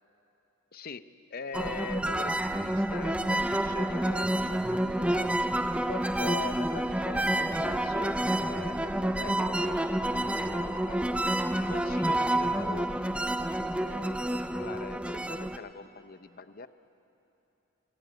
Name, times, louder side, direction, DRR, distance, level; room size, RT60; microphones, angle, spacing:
voice 1, 0.7-1.1 1.3-5.3 5.9-11.0 11.6-12.9 13.7-16.7, left 4 dB, 45° left, 12 dB, 0.7 m, -42 dB
sound 1, 1.5-15.6, right 1 dB, 5° right, 0.6 m, -29 dB
25.5 x 20.0 x 9.1 m, 2.9 s
head